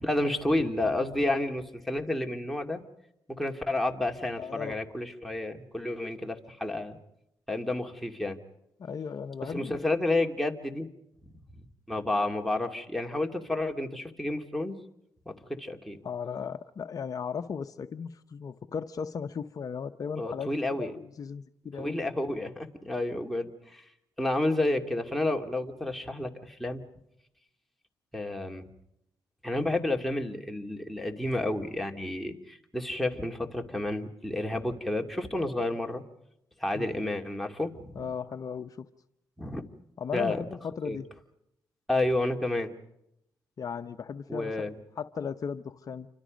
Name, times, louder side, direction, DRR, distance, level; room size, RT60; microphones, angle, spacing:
voice 1, 0.0-2.8 3.3-7.0 7.5-8.4 9.5-10.9 11.9-14.8 15.3-16.0 20.2-20.9 21.8-23.8 24.2-26.8 28.1-28.7 29.4-36.0 36.6-37.9 39.4-39.6 40.1-40.4 40.8-41.0 41.9-42.7 44.3-44.8, left 2 dB, ahead, 2 dB, 2.6 m, -30 dB
voice 2, 4.4-4.8 8.8-9.8 16.0-20.5 20.8-22.0 36.7-36.9 37.9-38.9 40.0-41.1 43.6-46.1, left 6 dB, 50° left, 8 dB, 0.8 m, -36 dB
29.0 x 25.5 x 5.2 m, 0.80 s
cardioid pair, 85°, 8 cm